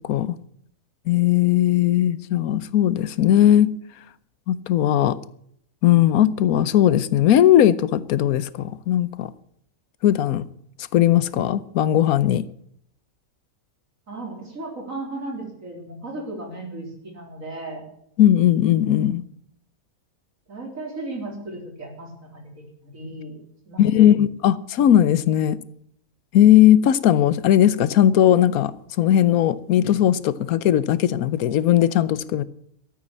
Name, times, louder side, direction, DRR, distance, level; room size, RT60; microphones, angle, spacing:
voice 1, 1.1-3.7 4.5-5.2 5.8-9.3 10.0-10.5 10.9-12.5 18.2-19.2 23.8-25.6 26.3-28.7 29.0-32.4, left 11 dB, 90° left, 1.2 m, -18 dB
voice 2, 14.1-17.8 20.5-23.4 23.7-24.2, right 2 dB, 65° right, 4.3 m, -35 dB
13.5 x 8.9 x 8.5 m
omnidirectional pair, 1.5 m